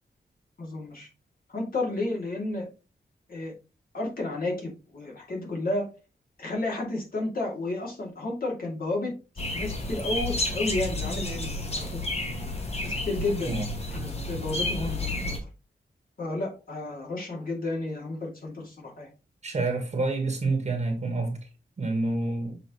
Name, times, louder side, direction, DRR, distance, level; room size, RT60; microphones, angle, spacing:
voice 1, 0.6-1.1 1.5-2.7 3.3-3.5 3.9-5.9 6.4-9.1 9.5-12.0 12.8-13.5 13.9-15.4 16.2-19.1, left 2 dB, 55° left, 2.4 m, -32 dB
sound 1, 9.4-15.4, left 2 dB, 35° left, 1.2 m, -31 dB
voice 2, 19.4-21.4 21.8-22.6, right 3 dB, 40° right, 1.3 m, -28 dB
6.8 x 4.7 x 3.0 m
wide cardioid pair, 160°, 17 cm